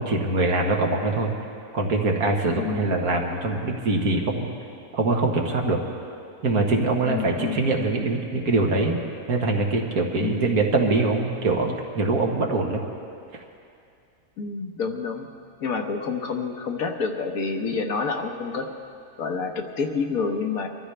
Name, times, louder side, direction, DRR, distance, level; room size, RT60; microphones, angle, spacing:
voice 1, 0.0-1.3 1.7-4.5 4.9-5.8 6.4-9.0 9.3-12.8, right 2 dB, 70° right, 1 dB, 1.8 m, -23 dB
voice 2, 2.6-3.0 7.1-7.6 10.2-10.5 14.4-15.3 15.6-18.7 19.2-20.7, left 4 dB, 65° left, 4 dB, 1.5 m, -28 dB
23.5 x 14.0 x 3.3 m, 2.5 s
omnidirectional pair, 1.6 m